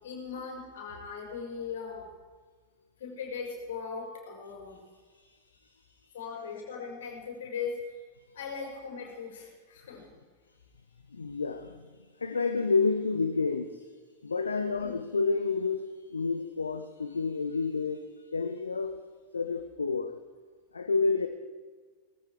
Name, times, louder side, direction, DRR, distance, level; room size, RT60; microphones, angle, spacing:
voice 1, 0.0-2.1 3.0-4.8 6.1-7.8 8.3-10.1 14.8-14.9, left 5 dB, 60° left, 0 dB, 5.6 m, -39 dB
voice 2, 11.1-11.9 12.2-13.9 14.2-18.1 18.3-19.0 19.3-20.2 20.7-21.3, left 4 dB, 75° left, 9 dB, 0.8 m, -29 dB
18.5 x 14.0 x 4.9 m, 1.5 s
figure-of-eight pair, 90°, 0 cm